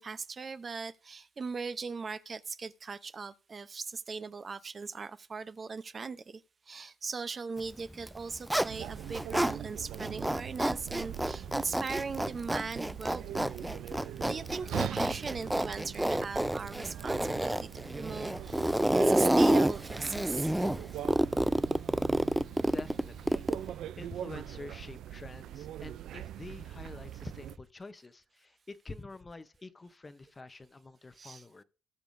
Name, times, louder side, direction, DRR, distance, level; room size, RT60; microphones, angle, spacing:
voice 1, 0.0-6.4 6.7-13.7 14.2-17.7 18.0-18.6 19.0-20.6 22.9-23.1 31.1-31.5, right 4 dB, 40° right, 0.7 m, -39 dB
Zipper (clothing), 7.9-9.6 9.9-23.7, right 1 dB, 5° right, 0.4 m, -29 dB
sound 1, 8.7-27.6, right 11 dB, 80° right, 0.4 m, -42 dB
voice 2, 22.2-31.6, left 3 dB, 25° left, 0.8 m, -48 dB
18.5 x 6.8 x 2.6 m
cardioid pair, 90°, 0 cm